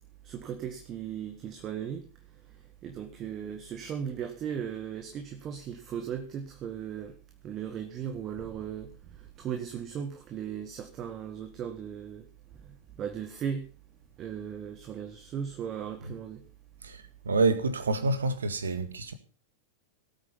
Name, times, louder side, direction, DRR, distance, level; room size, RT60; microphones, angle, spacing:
voice 1, 0.2-2.0 2.8-7.1 7.4-8.9 9.4-12.2 13.0-13.6 14.2-16.4 18.6-18.7, right 8 dB, 30° right, 1.7 m, -37 dB
voice 2, 16.8-19.1, right 3 dB, 70° right, 1.8 m, -28 dB
17.5 x 8.9 x 5.4 m
figure-of-eight pair, 90°, 0 cm